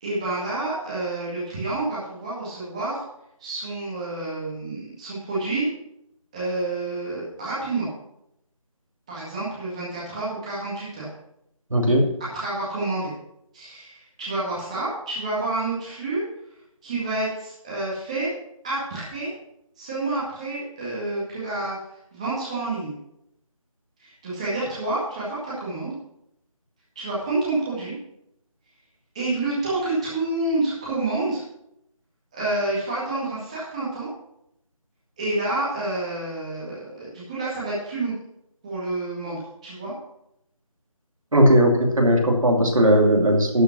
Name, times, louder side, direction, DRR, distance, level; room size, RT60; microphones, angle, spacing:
voice 1, 0.0-3.0 3.4-5.7 6.3-7.9 9.1-11.1 12.3-13.1 13.5-16.2 16.8-18.3 18.6-19.3 19.8-21.8 22.1-22.9 24.0-25.9 27.0-27.9 29.1-31.4 32.3-34.1 35.2-38.1 38.6-39.9, right 2 dB, 10° right, -8 dB, 1.9 m, -28 dB
voice 2, 11.7-12.1 41.3-43.6, equal, 70° right, 2 dB, 2.5 m, -17 dB
12.0 x 5.6 x 5.9 m, 0.80 s
figure-of-eight pair, 175°, 18 cm